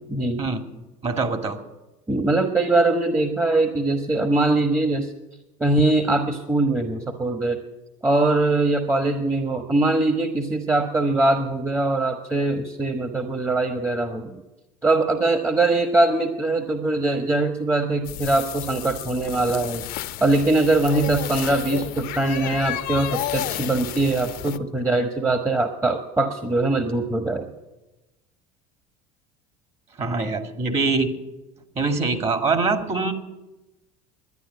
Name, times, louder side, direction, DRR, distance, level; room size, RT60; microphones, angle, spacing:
voice 1, 0.1-0.4 2.1-5.1 5.6-7.6 8.0-14.4 14.8-19.8 20.2-27.5, right 2 dB, 15° right, 6 dB, 1.1 m, -22 dB
voice 2, 1.0-1.6 30.0-31.1 31.8-33.1, right 3 dB, 35° right, 6 dB, 2.0 m, -23 dB
sound 1, 18.0-24.6, left 14 dB, 60° left, 0.7 m, -31 dB
12.0 x 9.9 x 9.4 m, 1.0 s
supercardioid pair, 90°, 18 cm